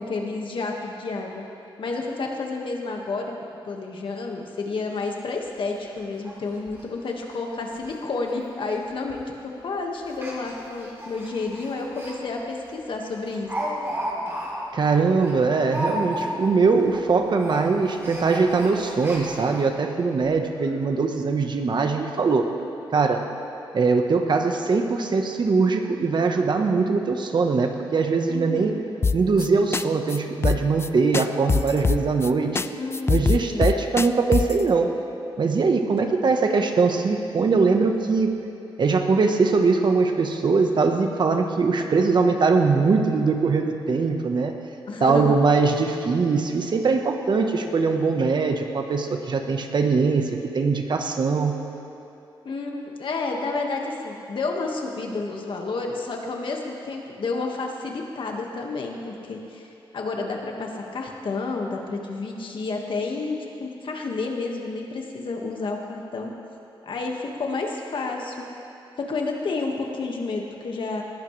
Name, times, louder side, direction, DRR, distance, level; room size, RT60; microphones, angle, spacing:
voice 1, 0.0-1.5 1.8-3.3 3.7-13.5 28.3-28.8 32.7-33.7 44.9-45.4 52.4-59.7 59.9-66.3 66.8-68.5 69.0-71.0, left 3 dB, 65° left, 1 dB, 1.8 m, -30 dB
Speech, 5.3-5.4 5.8-5.9 6.2-6.3 6.7-6.8 7.3-7.4 7.7-8.0 8.2-8.3 9.1-9.3 10.1-12.2 12.5-12.6 13.0-16.6 16.8-17.1 17.3-19.6 20.2-20.3 20.6-20.7, equal, 30° right, 3.8 m, -33 dB
voice 2, 14.7-22.4 22.9-23.2 23.7-28.8 29.1-32.6 33.1-34.9 35.4-38.3 38.8-44.5 45.0-51.6, right 4 dB, 55° right, 4 dB, 1.2 m, -21 dB
sound 1, 29.0-29.5 29.7-29.8 30.1-30.2 30.4-30.9 31.1-32.3 32.6-32.7 32.9-34.6, left 4 dB, 30° left, 0.4 m, -22 dB
20.0 x 15.0 x 3.3 m, 2.8 s
cardioid pair, 90°, 9 cm